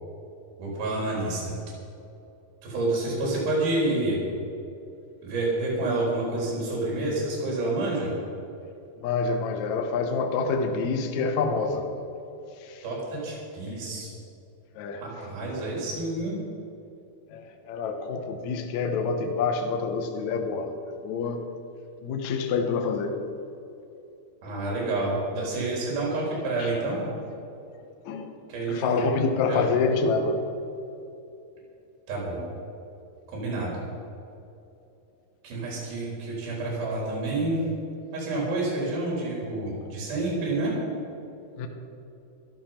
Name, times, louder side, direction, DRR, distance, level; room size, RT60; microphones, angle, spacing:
voice 1, 0.6-1.5 2.6-4.2 5.2-8.1 12.8-14.1 14.9-16.4 24.4-27.0 28.5-29.0 29.5-29.7 32.1-32.4 33.3-33.7 35.4-37.6 38.1-40.7, right 2 dB, 60° right, 5.5 m, -28 dB
voice 2, 9.0-11.9 12.7-12.8 14.8-15.0 17.3-21.5 22.0-23.3 26.6-26.7 28.1-28.4 28.7-30.5 41.6-41.7, left 4 dB, 65° left, 1.9 m, -27 dB
14.5 x 12.0 x 5.9 m
omnidirectional pair, 4.8 m